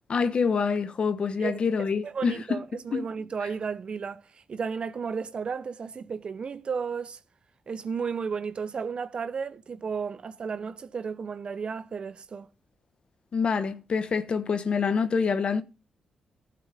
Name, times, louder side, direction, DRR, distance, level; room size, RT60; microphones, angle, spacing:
voice 1, 0.1-2.4 2.9-3.1 13.3-15.6, left 5 dB, 55° left, 1.3 m, -26 dB
voice 2, 1.4-4.2 4.5-7.2 7.7-12.5, right 6 dB, 55° right, 0.8 m, -33 dB
12.0 x 7.5 x 3.5 m
supercardioid pair, 55°, 2 cm